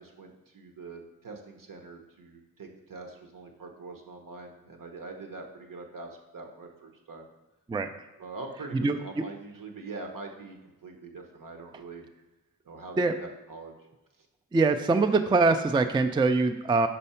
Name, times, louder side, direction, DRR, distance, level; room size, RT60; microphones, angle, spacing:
voice 1, 0.0-7.3 8.2-10.6 10.8-12.1 12.6-13.7, right 3 dB, 65° right, 3 dB, 1.0 m, -43 dB
voice 2, 14.5-16.9, right 3 dB, 15° right, 8 dB, 0.3 m, -23 dB
5.4 x 4.3 x 5.6 m, 1.1 s
wide cardioid pair, 90°, 35 cm